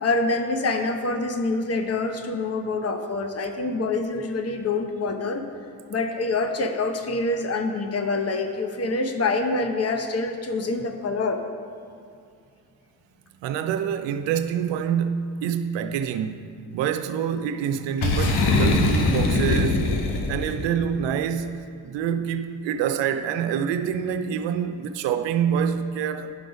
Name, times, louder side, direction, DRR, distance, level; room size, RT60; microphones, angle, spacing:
voice 1, 0.0-5.4 5.9-11.4, left 3 dB, 35° left, 0.8 m, -26 dB
voice 2, 13.4-26.3, right 8 dB, 85° right, 0.5 m, -26 dB
Boom, 18.0-20.7, left 2 dB, 70° left, 0.9 m, -22 dB
11.5 x 3.9 x 4.9 m
supercardioid pair, 55°, 42 cm